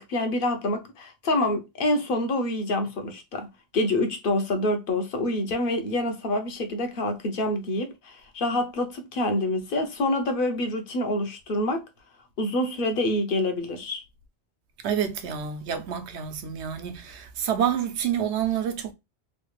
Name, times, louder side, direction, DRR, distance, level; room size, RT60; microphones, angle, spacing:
voice 1, 0.0-11.8 12.4-14.0, left 1 dB, 60° left, 0.8 m, -27 dB
voice 2, 14.8-18.9, right 9 dB, 80° right, 0.9 m, -28 dB
3.2 x 2.3 x 3.1 m
omnidirectional pair, 1.1 m